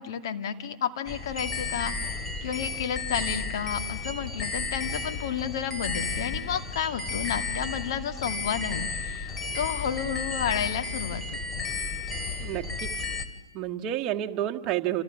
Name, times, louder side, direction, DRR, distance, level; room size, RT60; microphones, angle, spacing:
voice 1, 0.0-2.1 2.4-11.2 11.5-11.7, left 8 dB, 60° left, 7 dB, 2.4 m, -31 dB
sound 1, 1.1-13.3, left 4 dB, 15° left, 2.6 m, -33 dB
voice 2, 12.4-12.9 13.5-15.0, right 12 dB, 30° right, 4 dB, 1.7 m, -30 dB
28.5 x 28.0 x 7.2 m, 1.1 s
hypercardioid pair, 115°, 3 cm